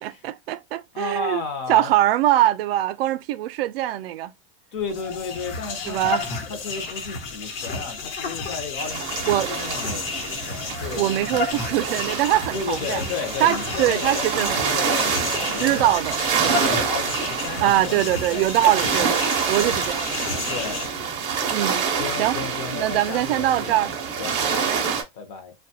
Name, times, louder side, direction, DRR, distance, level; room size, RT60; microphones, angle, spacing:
voice 1, 0.0-4.3 5.9-6.2 9.2-9.5 10.9-13.0 13.4-14.7 15.0-15.1 15.6-16.7 17.6-20.5 21.5-21.8 22.2-22.4 22.7-23.9 24.4-24.8, right 14 dB, 80° right, 0.5 m, -23 dB
voice 2, 0.9-1.9 4.7-6.2 6.5-11.0 12.5-16.0 16.6-18.5 20.5-20.8 21.4-21.5 22.0-25.5, left 5 dB, 30° left, 0.5 m, -33 dB
sound 1, 4.8-20.9, left 4 dB, 70° left, 0.9 m, -32 dB
sound 2, 8.8-25.0, right 6 dB, 25° right, 0.5 m, -27 dB
2.8 x 2.2 x 2.7 m
supercardioid pair, 175°, 29 cm